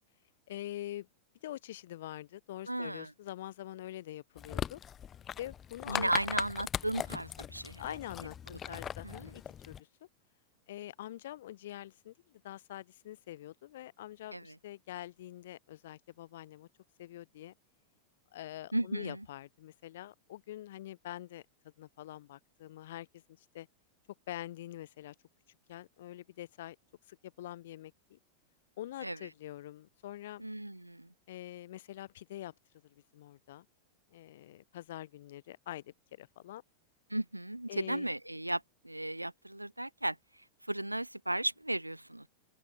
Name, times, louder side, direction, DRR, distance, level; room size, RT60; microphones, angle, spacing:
voice 1, 0.5-1.1 1.4-4.8 5.4-6.1 7.8-9.9 10.7-16.7 17.0-17.5 18.3-21.4 21.8-23.7 24.3-25.2 25.7-26.8 27.1-28.2 28.8-30.4 31.3-32.5 32.8-33.7 34.1-36.6 37.7-38.1, left 14 dB, 55° left, 5.9 m, -45 dB
voice 2, 2.7-3.1 5.9-7.9 8.5-9.3 14.3-14.6 18.7-19.3 29.0-29.2 30.4-31.1 37.1-42.3, right 1 dB, 85° right, 0.5 m, -36 dB
sound 1, 4.4-9.8, left 9 dB, 25° left, 0.3 m, -40 dB
open air
figure-of-eight pair, 90°, 0 cm